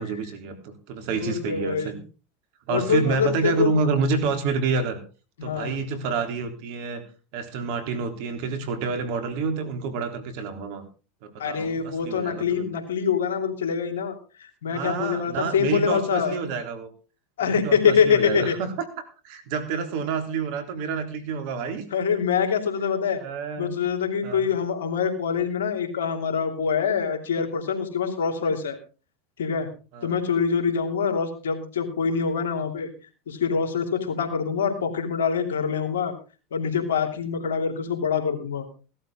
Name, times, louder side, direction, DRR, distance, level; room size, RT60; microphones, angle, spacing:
voice 1, 0.0-2.0 2.7-5.0 5.4-7.0 7.3-10.8 11.2-12.7 14.7-16.9 17.4-18.9 19.2-21.8 23.1-23.8 24.2-24.5 29.9-30.1, right 5 dB, 65° right, 7 dB, 3.4 m, -28 dB
voice 2, 1.1-2.0 2.7-3.7 5.4-5.8 11.4-16.3 17.4-18.5 21.9-23.2 23.6-28.8 29.4-29.7 30.0-32.9 33.3-36.1 36.5-38.7, left 6 dB, 85° left, 5 dB, 3.1 m, -25 dB
17.0 x 12.0 x 3.8 m, 0.34 s
hypercardioid pair, 90°, 0 cm